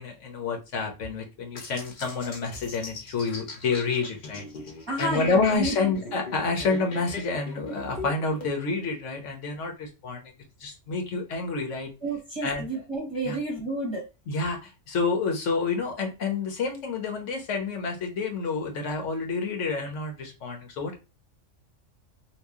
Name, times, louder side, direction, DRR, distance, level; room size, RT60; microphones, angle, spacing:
voice 1, 0.0-4.4 5.0-10.3 10.6-11.9 12.4-12.7 13.2-13.4 14.3-21.0, left 4 dB, 80° left, 3 dB, 1.2 m, -29 dB
sound 1, 1.6-8.5, left 2 dB, 45° left, 0.9 m, -40 dB
voice 2, 4.9-5.7 12.0-14.1, right 2 dB, 25° right, -1 dB, 0.9 m, -30 dB
3.0 x 2.5 x 3.5 m, 0.28 s
omnidirectional pair, 1.3 m